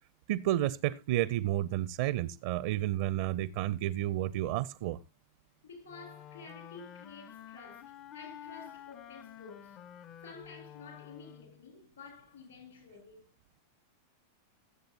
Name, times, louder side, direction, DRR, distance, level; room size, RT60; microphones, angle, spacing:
voice 1, 0.3-5.0, right 14 dB, 50° right, 0.5 m, -31 dB
voice 2, 5.6-9.8 10.2-13.3, left 4 dB, 70° left, 5.2 m, -51 dB
Wind instrument woodwind instrument, 5.9-11.6, left 11 dB, 35° left, 0.5 m, -50 dB
23.0 x 7.8 x 2.8 m
figure-of-eight pair, 90°, 0 cm